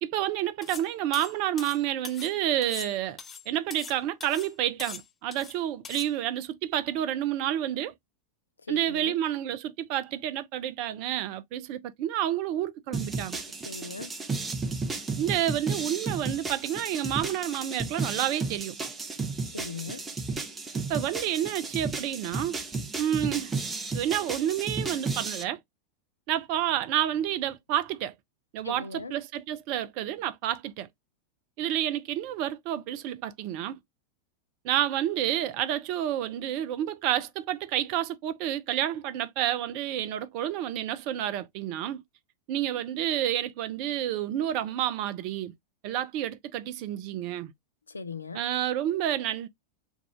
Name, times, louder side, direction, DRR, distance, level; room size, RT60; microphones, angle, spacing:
voice 1, 0.0-3.2 3.5-7.9 8.7-13.4 15.2-18.8 20.7-22.6 23.0-23.5 23.9-25.6 26.3-28.1 28.5-30.9 31.6-33.8 34.6-42.0 42.5-45.5 45.8-47.5 48.3-49.5, right 11 dB, 45° right, 0.4 m, -29 dB
sound 1, 0.6-2.3 2.6-4.0 4.2-4.5 4.8-5.5 5.8-6.1, left 6 dB, 20° left, 0.4 m, -42 dB
voice 2, 8.7-9.1 13.7-14.1 19.5-20.0 28.6-29.1 47.9-48.4, left 3 dB, 75° left, 0.4 m, -38 dB
sound 2, 12.9-25.4, right 3 dB, 15° right, 0.7 m, -33 dB
3.5 x 2.4 x 3.0 m
figure-of-eight pair, 90°, 0 cm